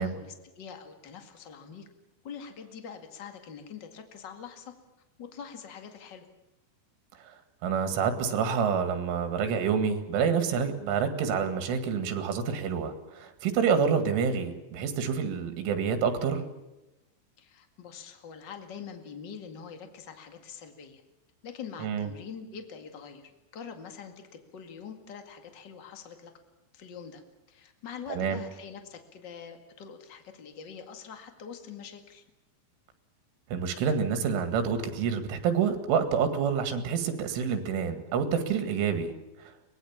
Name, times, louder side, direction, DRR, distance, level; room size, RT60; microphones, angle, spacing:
voice 1, 0.0-1.8 2.2-4.7 5.2-6.3 17.4-21.0 21.4-24.1 24.5-26.3 26.7-27.2 27.5-32.2, left 7 dB, 50° left, 6 dB, 1.3 m, -44 dB
voice 2, 7.6-16.5 21.8-22.1 28.1-28.4 33.5-39.2 39.4-39.5, right 6 dB, 85° right, 9 dB, 4.4 m, -28 dB
24.0 x 20.0 x 7.3 m, 0.99 s
omnidirectional pair, 5.5 m